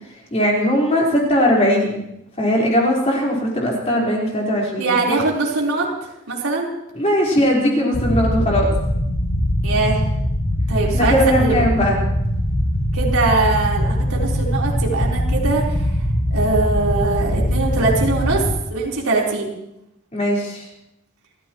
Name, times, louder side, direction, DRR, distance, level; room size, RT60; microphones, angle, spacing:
voice 1, 0.3-2.0 2.4-5.2 7.0-8.7 10.9-12.0 20.1-20.6, equal, 30° left, -3 dB, 4.5 m, -19 dB
voice 2, 4.8-5.9 6.3-6.7 9.6-10.0 10.7-11.6 12.9-15.9 16.3-18.5 18.7-19.5, right 3 dB, 85° right, -3 dB, 4.2 m, -21 dB
sound 1, 7.9-18.5, equal, 85° left, 2.3 m, -21 dB
29.0 x 14.5 x 3.1 m, 0.84 s
head